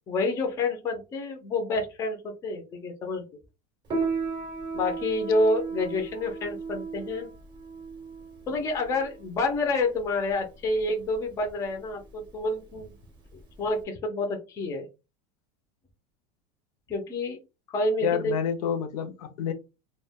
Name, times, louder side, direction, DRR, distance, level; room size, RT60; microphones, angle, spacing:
voice 1, 0.1-3.2 4.7-7.3 8.5-12.9 13.6-14.9 16.9-17.4 17.7-18.3, left 2 dB, 15° left, 0.4 m, -28 dB
Piano, 3.9-13.8, right 4 dB, 25° right, 0.6 m, -36 dB
voice 2, 18.0-19.5, left 8 dB, 75° left, 0.6 m, -28 dB
2.1 x 2.1 x 3.4 m
supercardioid pair, 165°, 19 cm